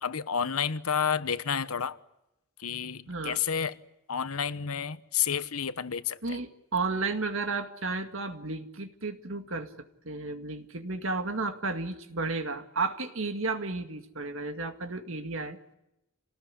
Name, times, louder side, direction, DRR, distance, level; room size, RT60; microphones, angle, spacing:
voice 1, 0.0-2.0 2.6-3.7 4.1-6.4, left 7 dB, 85° left, 1.1 m, -30 dB
voice 2, 3.1-3.4 6.2-9.7 10.0-15.6, right 3 dB, 65° right, 2.1 m, -33 dB
27.5 x 19.0 x 9.9 m
head